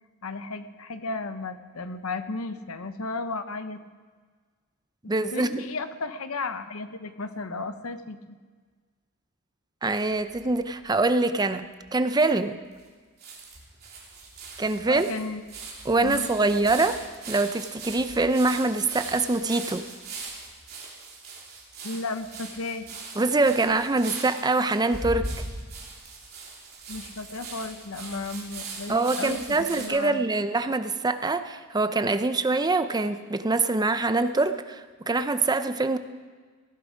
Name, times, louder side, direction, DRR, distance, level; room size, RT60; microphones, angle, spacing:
voice 1, 0.2-3.8 5.3-8.4 14.9-15.4 16.0-16.3 21.8-22.9 26.9-30.2, left 3 dB, 80° left, 10 dB, 0.9 m, -34 dB
voice 2, 5.1-5.6 9.8-12.6 14.6-15.1 15.9-17.0 17.3-19.8 23.2-25.3 28.9-36.0, right 3 dB, 20° right, 10 dB, 0.5 m, -24 dB
sound 1, 10.1-11.0 11.6-11.7 11.8-11.9 12.8-12.9 13.2-29.9, right 3 dB, 50° right, 3.2 m, -40 dB
17.0 x 12.0 x 5.1 m, 1.5 s
head